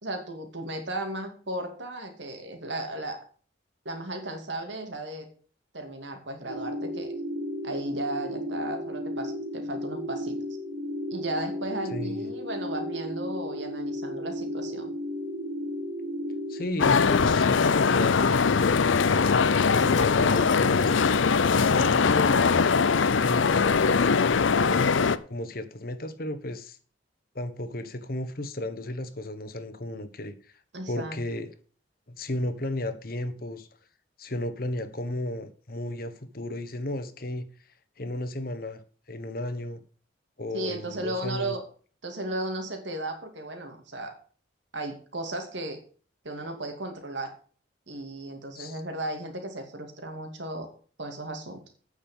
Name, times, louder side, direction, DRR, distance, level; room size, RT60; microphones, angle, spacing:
voice 1, 0.0-3.2 3.8-5.3 5.7-7.1 7.6-10.4 11.1-14.9 19.8-20.6 30.7-31.2 40.5-41.6 42.0-44.1 44.7-45.8 46.2-47.3 47.9-50.7 51.0-51.8, right 1 dB, 75° right, 2.5 m, -35 dB
sound 1, 6.5-16.7, equal, 45° right, 1.1 m, -34 dB
voice 2, 11.9-12.3 16.5-19.0 19.9-20.9 21.5-22.5 23.2-24.8 25.3-26.8 27.3-30.3 30.9-31.5 32.2-33.7 34.2-37.4 38.0-38.8 39.1-39.8 40.4-41.6 48.5-48.8, left 1 dB, 50° left, 1.1 m, -34 dB
sound 2, 16.8-25.2, left 5 dB, 85° left, 0.6 m, -21 dB
9.1 x 6.6 x 7.2 m
head